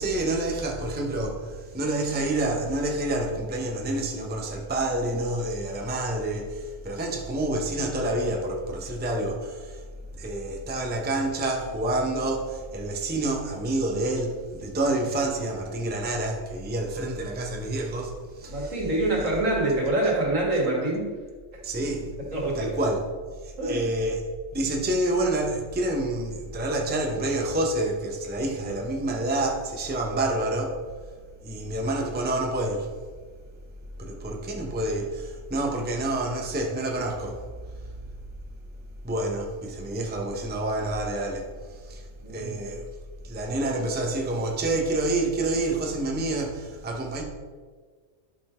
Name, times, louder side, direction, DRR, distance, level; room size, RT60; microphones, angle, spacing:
voice 1, 0.0-9.8 10.2-18.8 21.6-22.1 22.6-23.0 23.4-24.2 24.5-30.8 31.4-32.9 34.0-37.4 39.0-42.9 43.2-47.2, right 1 dB, 10° right, 0.7 m, -28 dB
voice 2, 18.5-21.1 21.5-21.6 22.3-22.7 23.6-23.8 42.2-42.7, right 2 dB, 75° right, 2.3 m, -26 dB
11.0 x 3.9 x 4.4 m
omnidirectional pair, 1.3 m